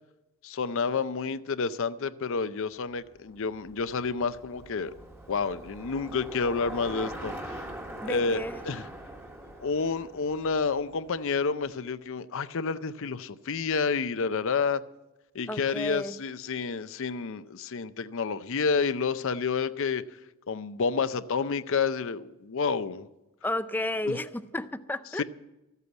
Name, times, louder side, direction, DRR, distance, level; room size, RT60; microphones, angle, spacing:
voice 1, 0.4-4.9 5.3-7.6 8.0-8.9 9.6-14.8 15.3-20.0 20.5-23.1 24.1-24.2 25.2-25.3, left 5 dB, 65° left, 0.6 m, -29 dB
Bicycle, 3.0-11.3, right 1 dB, 10° right, 1.3 m, -43 dB
voice 2, 8.0-8.6 15.5-16.2 23.4-25.2, left 1 dB, 10° left, 0.5 m, -32 dB
14.0 x 8.3 x 8.0 m
head